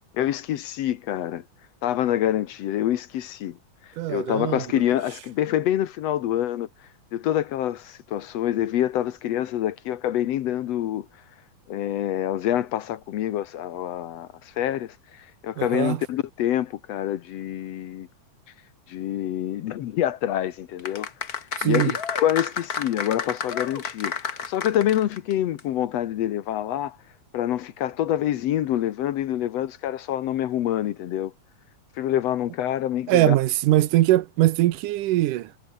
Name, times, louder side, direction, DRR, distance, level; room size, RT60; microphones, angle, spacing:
voice 1, 0.1-1.4 1.8-3.6 3.9-6.7 7.1-11.1 11.7-18.1 18.9-21.1 21.6-22.0 22.2-27.0 27.3-31.3 32.0-33.4, left 12 dB, 65° left, 1.9 m, -26 dB
voice 2, 4.0-4.6 15.6-16.0 21.6-22.0 33.1-35.5, right 15 dB, 85° right, 2.5 m, -21 dB
sound 1, 20.8-25.3 25.6-25.7, left 6 dB, 35° left, 1.7 m, -31 dB
omnidirectional pair, 3.6 m